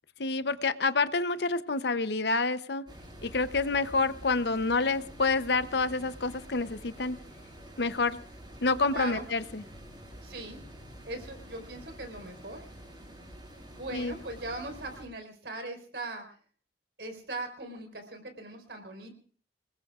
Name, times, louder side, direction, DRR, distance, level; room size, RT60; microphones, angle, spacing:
voice 1, 0.2-2.8 3.2-7.2 7.8-8.2 8.6-9.6 13.9-14.1, left 3 dB, 65° left, 13 dB, 0.8 m, -28 dB
sound 1, 2.9-15.0, equal, 25° right, 6.0 m, -48 dB
voice 2, 8.9-9.2 10.2-10.6 11.1-12.7 13.8-16.2 17.0-19.1, right 2 dB, 70° right, 5 dB, 4.4 m, -40 dB
27.0 x 20.5 x 2.5 m, 0.43 s
head